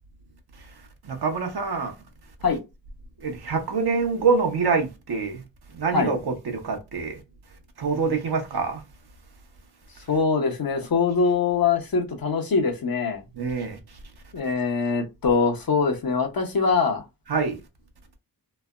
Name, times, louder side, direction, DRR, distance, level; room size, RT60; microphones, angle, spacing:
voice 1, 1.0-1.9 3.2-5.4 5.7-7.2 7.8-8.8 13.4-13.8 17.3-17.6, right 5 dB, 60° right, 1.0 m, -25 dB
voice 2, 10.1-13.2 14.3-17.0, left 5 dB, 55° left, 0.9 m, -23 dB
3.2 x 2.0 x 2.4 m
cardioid pair, 45°, 43 cm